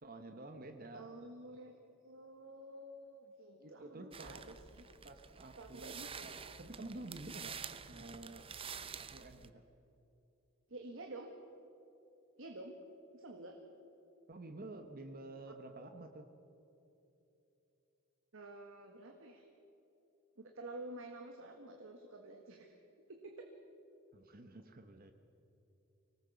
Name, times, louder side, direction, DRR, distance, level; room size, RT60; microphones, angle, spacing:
voice 1, 0.0-1.1 3.6-4.4 5.0-8.5 9.0-9.6 14.3-16.3 24.1-25.1, right 2 dB, 40° right, 6 dB, 1.1 m, -50 dB
voice 2, 0.9-1.8 2.0-4.8 5.6-6.3 10.7-11.3 12.4-12.8 13.1-13.6 18.3-19.5 20.4-22.8 23.1-23.5, right 2 dB, 60° right, 3 dB, 1.7 m, -50 dB
sound 1, 4.1-9.5, right 6 dB, 25° right, 0.7 m, -49 dB
25.0 x 18.5 x 7.0 m, 3.0 s
head